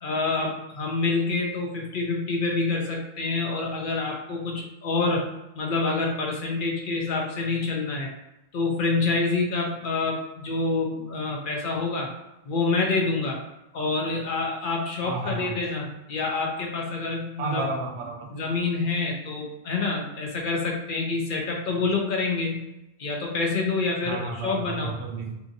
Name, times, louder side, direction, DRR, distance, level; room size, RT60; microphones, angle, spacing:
voice 1, 0.0-5.3 5.6-8.1 8.5-12.1 12.5-13.4 13.7-17.7 18.3-22.7 23.0-25.0, left 3 dB, 60° left, 0 dB, 0.6 m, -27 dB
voice 2, 15.0-15.5 17.4-18.3 24.1-25.4, right 3 dB, 80° right, 2 dB, 0.9 m, -32 dB
2.7 x 2.5 x 2.6 m, 0.92 s
omnidirectional pair, 1.1 m